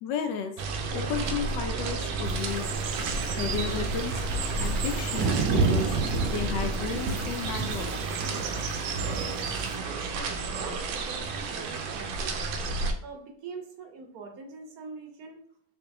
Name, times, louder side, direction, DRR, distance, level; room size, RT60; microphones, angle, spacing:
voice 1, 0.0-2.7 3.0-6.0 6.2-8.0, left 6 dB, 75° left, 5 dB, 1.2 m, -34 dB
sound 1, 0.6-12.9, right 4 dB, 85° right, 1.4 m, -29 dB
sound 2, 2.2-9.8, right 1 dB, 45° right, 0.7 m, -46 dB
voice 2, 10.0-15.4, right 4 dB, 65° right, 4 dB, 1.0 m, -44 dB
4.7 x 2.6 x 2.6 m, 0.62 s
omnidirectional pair, 2.1 m